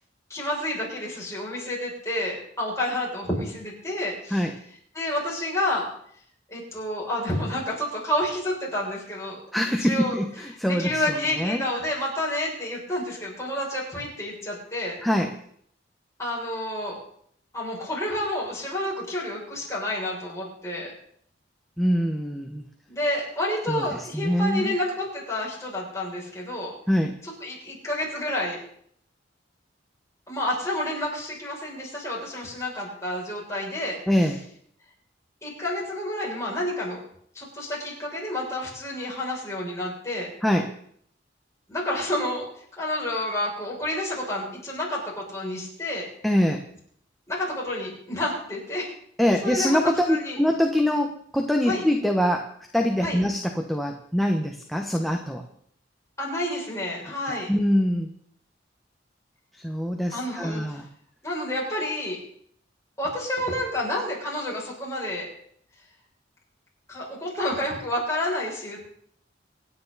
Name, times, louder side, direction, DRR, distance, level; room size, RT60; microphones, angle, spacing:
voice 1, 0.3-4.4 4.9-5.9 6.5-9.4 9.8-10.1 10.7-15.0 16.2-17.0 17.5-20.9 22.9-26.7 27.4-28.6 30.3-34.0 35.4-37.0 37.3-40.3 41.7-42.4 42.8-46.1 47.3-48.9 49.4-49.8 50.1-50.4 51.6-51.8 53.0-53.2 56.2-57.5 60.1-60.8 61.2-62.2 63.0-65.3 66.9-68.8, left 1 dB, 15° left, -4 dB, 6.8 m, -29 dB
voice 2, 9.5-11.6 15.0-15.3 21.8-22.6 23.7-24.8 26.9-27.2 34.1-34.4 40.4-40.7 46.2-46.6 49.2-52.5 52.7-55.4 57.5-58.1 59.6-60.9, equal, ahead, 2 dB, 1.2 m, -24 dB
26.5 x 9.7 x 4.1 m, 0.64 s
head